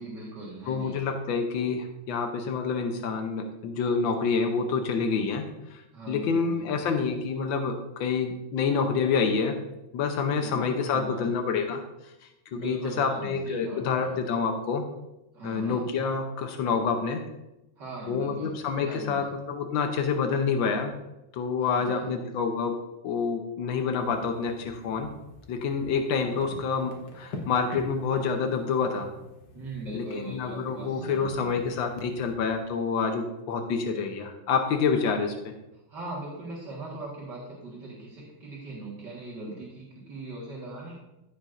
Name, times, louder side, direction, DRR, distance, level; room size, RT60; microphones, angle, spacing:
voice 1, 0.0-1.0 5.9-7.0 10.3-11.3 12.5-14.1 15.3-15.8 17.8-19.3 21.6-22.1 29.5-31.7 35.9-41.0, right 2 dB, 65° right, -6 dB, 2.3 m, -40 dB
voice 2, 0.7-9.6 9.9-12.1 12.5-14.8 15.4-17.2 18.1-20.9 21.3-22.8 23.0-25.1 25.5-29.1 29.9-35.5, left 5 dB, 85° left, 4 dB, 1.5 m, -28 dB
sound 1, 24.0-32.3, left 2 dB, 70° left, 2.0 m, -46 dB
15.5 x 6.2 x 2.5 m, 0.95 s
omnidirectional pair, 2.1 m